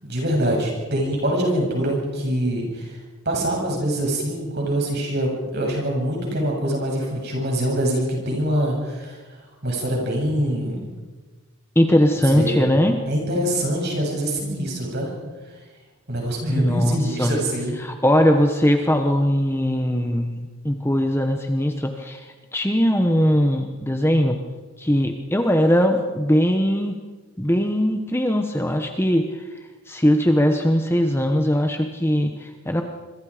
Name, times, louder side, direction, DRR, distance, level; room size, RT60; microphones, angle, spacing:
voice 1, 0.0-3.0 3.2-9.2 9.6-10.8 12.3-12.6 13.1-15.1 16.1-17.8, right 1 dB, 45° right, -1 dB, 8.0 m, -24 dB
voice 2, 11.7-13.0 16.5-17.3 17.8-24.4 24.8-27.0 27.4-29.4 29.9-32.8, equal, 10° left, 5 dB, 1.2 m, -20 dB
27.0 x 23.0 x 5.1 m, 1.3 s
head